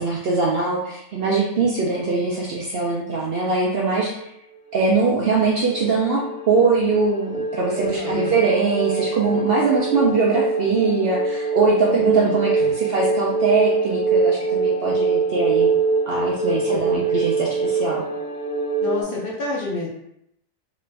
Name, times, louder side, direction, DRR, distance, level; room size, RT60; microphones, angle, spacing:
voice 1, 0.0-4.3 4.7-12.5 12.8-15.7 16.1-18.0, right 4 dB, 65° right, -4 dB, 0.6 m, -22 dB
sound 1, 5.0-19.0, right 4 dB, 75° left, 0.9 m, -23 dB
voice 2, 7.7-8.4 11.8-12.3 12.6-12.7 16.7-17.2 18.8-19.9, left 2 dB, 50° left, -5 dB, 0.7 m, -29 dB
3.0 x 2.4 x 3.2 m, 0.78 s
omnidirectional pair, 1.4 m